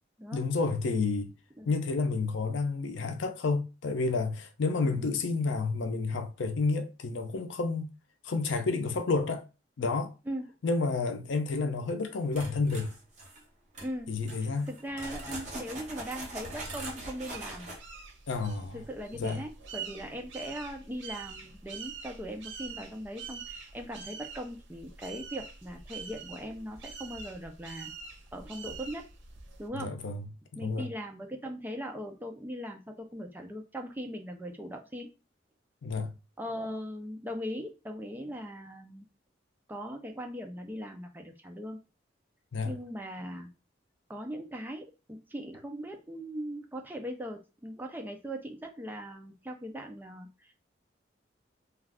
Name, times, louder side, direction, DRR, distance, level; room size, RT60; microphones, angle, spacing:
voice 1, 0.3-1.3 1.7-7.9 8.2-9.4 9.8-10.1 10.6-12.9 14.1-14.7 18.3-18.8 19.2-19.4 29.7-30.2 30.6-30.9 35.8-36.1 42.5-42.7, left 3 dB, 85° left, 0.5 m, -30 dB
voice 2, 4.8-5.2 10.3-10.5 13.8-14.2 14.4-17.7 18.7-27.9 28.3-29.1 29.6-29.9 30.6-35.1 36.4-39.0 39.7-41.8 42.7-43.5 44.1-50.5, equal, 10° right, 0.4 m, -40 dB
sound 1, 12.3-13.4 13.7-13.9 14.2-17.8, right 2 dB, 40° right, 0.8 m, -42 dB
sound 2, 15.7-29.7, right 5 dB, 85° right, 0.7 m, -45 dB
2.3 x 2.3 x 3.4 m
head